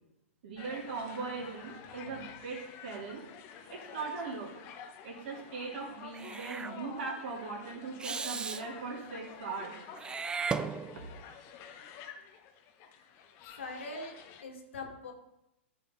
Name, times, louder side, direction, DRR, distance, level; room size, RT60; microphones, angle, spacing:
voice 1, 0.4-3.2 3.7-4.5 5.0-9.7, right 4 dB, 55° right, -2 dB, 3.3 m, -39 dB
sound 1, 0.6-14.4, left 7 dB, 40° left, 1.1 m, -50 dB
Meow / Hiss, 6.1-6.7 8.0-8.6 10.0-11.2, right 5 dB, 10° right, 0.4 m, -36 dB
voice 2, 13.6-15.1, left 2 dB, 70° left, 1 dB, 2.2 m, -43 dB
13.5 x 5.0 x 4.0 m, 0.88 s
hypercardioid pair, 110°, 7 cm